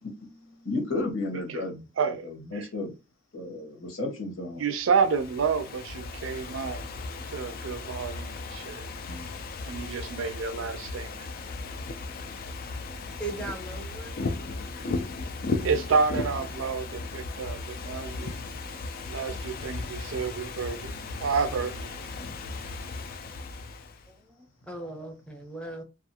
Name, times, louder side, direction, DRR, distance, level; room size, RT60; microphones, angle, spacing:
voice 1, 0.0-2.9 3.3-4.6 9.1-9.3, left 2 dB, 75° left, 1.0 m, -34 dB
voice 2, 2.0-2.3 2.5-2.6 4.6-6.8 7.3-8.9 9.6-11.3 15.6-18.3 19.1-21.9, right 5 dB, 70° right, 0.4 m, -29 dB
Ocean / Fireworks, 4.8-24.1, left 3 dB, 45° left, 0.3 m, -36 dB
voice 3, 13.2-14.2 24.1-25.8, right 2 dB, 5° left, 0.6 m, -39 dB
2.4 x 2.4 x 2.7 m
head